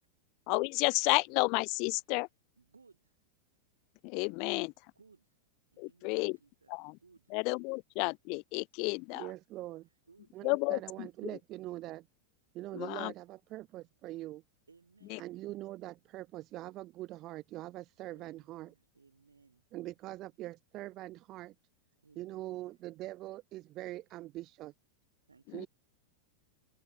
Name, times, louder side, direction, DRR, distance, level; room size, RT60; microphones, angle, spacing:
voice 1, 0.5-2.3 4.0-4.7 5.8-6.4 6.7-7.0 7.3-9.3 10.4-11.3 12.7-13.1 15.1-15.2 25.5-25.7, left 32 dB, 45° left, 0.5 m, -32 dB
voice 2, 2.6-3.2 4.9-5.4 5.7-6.7 7.0-7.4 10.1-10.4 14.7-15.2 18.1-19.6 22.0-22.6 25.3-25.7, right 4 dB, 75° right, 7.7 m, -63 dB
voice 3, 9.1-9.9 10.3-12.1 12.5-14.4 15.2-18.7 19.7-21.5 22.2-24.7 25.5-25.7, right 16 dB, 35° right, 0.9 m, -43 dB
figure-of-eight pair, 90°, 0 cm